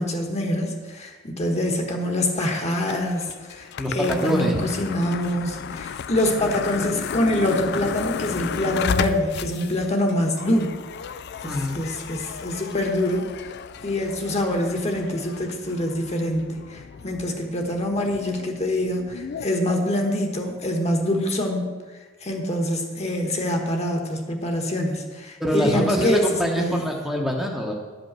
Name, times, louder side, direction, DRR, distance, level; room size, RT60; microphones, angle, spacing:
voice 1, 0.0-10.7 11.4-13.3 13.8-21.7 22.2-26.8, left 1 dB, 30° left, 2 dB, 1.3 m, -25 dB
sound 1, 2.4-19.5, left 7 dB, 55° left, 0.3 m, -34 dB
voice 2, 3.8-4.7 11.4-11.8 25.4-27.7, equal, ahead, -2 dB, 1.0 m, -24 dB
11.0 x 5.4 x 7.3 m, 1.4 s
head